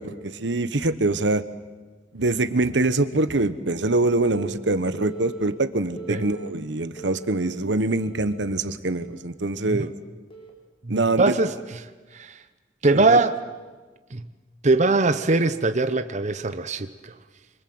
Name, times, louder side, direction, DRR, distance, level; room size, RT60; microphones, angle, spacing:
voice 1, 0.0-1.4 2.1-9.9 10.9-11.3 12.9-13.2, right 2 dB, 85° right, 11 dB, 1.3 m, -24 dB
Telephone, 4.3-4.5 4.9-5.5 6.0-6.5 7.0-7.5 8.0-8.5 9.0-9.3 10.3-10.5, right 3 dB, 35° left, 4.0 m, -39 dB
voice 2, 10.8-11.5 12.1-12.4 12.8-13.3 14.1-14.3 14.6-17.1, right 3 dB, 40° right, 10 dB, 0.9 m, -21 dB
26.5 x 24.5 x 7.9 m, 1.3 s
head